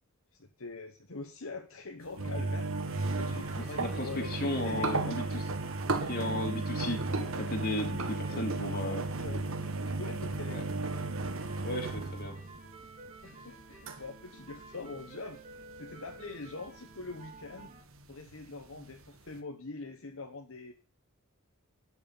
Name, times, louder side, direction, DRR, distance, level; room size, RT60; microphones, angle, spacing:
voice 1, 0.3-2.7 3.1-5.1 8.3-9.6 10.0-10.7 13.2-17.7 18.1-20.7, left 3 dB, 65° left, 4 dB, 1.3 m, -44 dB
sound 1, 2.1-14.1 14.4-19.4, right 3 dB, 65° right, 1.5 m, -35 dB
sound 2, 2.3-8.4 8.8-17.8, right 3 dB, 35° right, 3.7 m, -51 dB
voice 2, 3.7-5.4 6.0-9.1 10.5-10.6 11.6-12.4, left 1 dB, 45° left, 2 dB, 3.3 m, -35 dB
13.0 x 6.5 x 7.1 m, 0.38 s
head